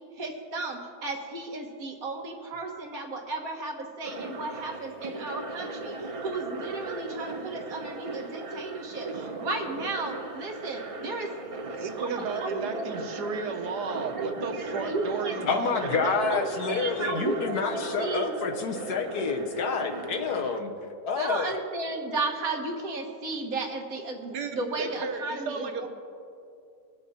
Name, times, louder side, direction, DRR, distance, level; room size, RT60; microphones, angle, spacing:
voice 1, 0.2-11.3 11.7-13.0 13.8-15.4 16.0-18.4 21.2-25.9, right 3 dB, 60° right, 2 dB, 1.8 m, -34 dB
sound 1, 4.0-20.6, right 3 dB, 45° right, 0.4 m, -37 dB
voice 2, 11.7-16.4 24.3-25.9, right 5 dB, 85° right, 5 dB, 1.5 m, -34 dB
voice 3, 15.5-20.7 21.0-21.5, left 5 dB, 75° left, 4 dB, 1.5 m, -28 dB
20.5 x 7.4 x 4.2 m, 2.5 s
omnidirectional pair, 1.7 m